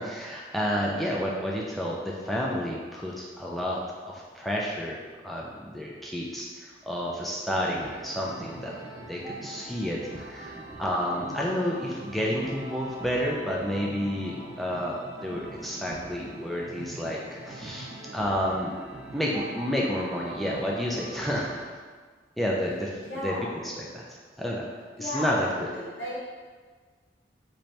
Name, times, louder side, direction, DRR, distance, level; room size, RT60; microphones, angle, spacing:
voice 1, 0.0-3.8 4.1-5.0 5.2-8.7 9.0-18.7 19.1-21.8 22.4-23.3 23.8-24.7 25.0-25.7, equal, ahead, -4 dB, 0.3 m, -30 dB
sound 1, 7.5-21.6, right 2 dB, 15° right, 0.8 m, -42 dB
voice 2, 23.0-23.5 24.9-26.2, left 1 dB, 75° left, -7 dB, 0.7 m, -35 dB
4.3 x 2.6 x 3.2 m, 1.5 s
head